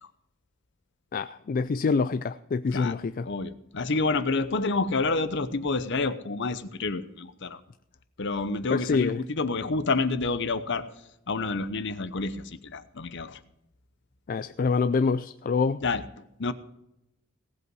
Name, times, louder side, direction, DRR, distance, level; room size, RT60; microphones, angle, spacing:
voice 1, 1.1-3.3 8.7-9.2 14.3-15.8, left 4 dB, 40° left, 0.3 m, -26 dB
voice 2, 3.3-7.6 8.2-10.8 11.3-13.4 15.8-16.0 16.4-16.5, left 3 dB, 55° left, 0.8 m, -28 dB
18.0 x 8.1 x 4.7 m
head